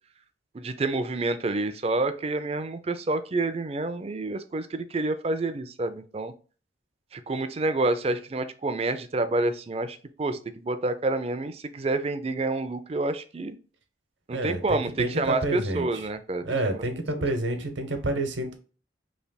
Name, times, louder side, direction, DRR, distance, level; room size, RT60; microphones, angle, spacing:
voice 1, 0.5-6.3 7.1-13.5 14.3-16.4, right 2 dB, 35° right, 11 dB, 0.4 m, -28 dB
voice 2, 14.3-16.1 16.4-18.5, right 2 dB, 80° right, 6 dB, 1.0 m, -29 dB
5.4 x 3.3 x 2.3 m, 0.37 s
head